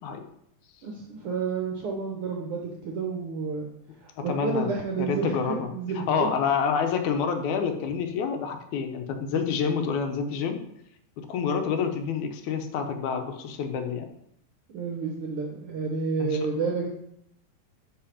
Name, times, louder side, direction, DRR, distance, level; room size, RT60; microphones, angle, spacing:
voice 1, 0.8-3.7 4.0-6.3 14.7-16.9, right 4 dB, 70° right, 0 dB, 1.3 m, -30 dB
voice 2, 4.2-4.7 5.0-10.6 11.2-14.1 16.2-16.4, left 6 dB, 80° left, 6 dB, 2.2 m, -28 dB
5.9 x 5.5 x 4.9 m, 0.74 s
omnidirectional pair, 3.5 m